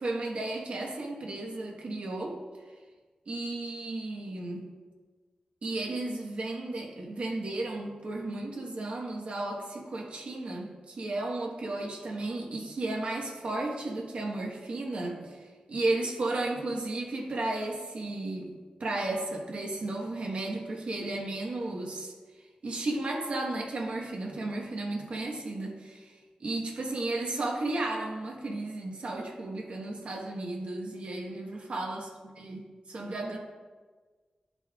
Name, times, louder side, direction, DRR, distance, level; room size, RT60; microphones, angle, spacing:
voice 1, 0.0-2.4 3.3-4.7 5.6-18.5 18.8-22.1 22.6-26.1 26.4-32.1 32.4-32.6 32.9-33.4, right 2 dB, 55° right, 0 dB, 1.2 m, -34 dB
12.5 x 5.4 x 2.4 m, 1.4 s
wide cardioid pair, 155°, 2 cm